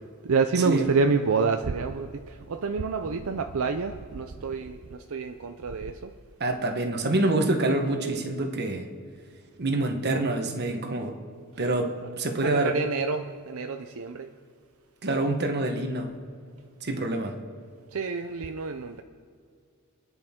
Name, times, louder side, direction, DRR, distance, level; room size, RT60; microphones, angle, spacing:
voice 1, 0.2-6.1 11.6-11.7 12.4-14.3 17.9-19.0, right 4 dB, 70° right, 0.6 m, -28 dB
voice 2, 6.4-8.9 9.6-11.2 11.6-12.8 15.0-16.2 16.8-17.4, right 2 dB, 50° right, 1.3 m, -26 dB
27.5 x 10.0 x 3.7 m
head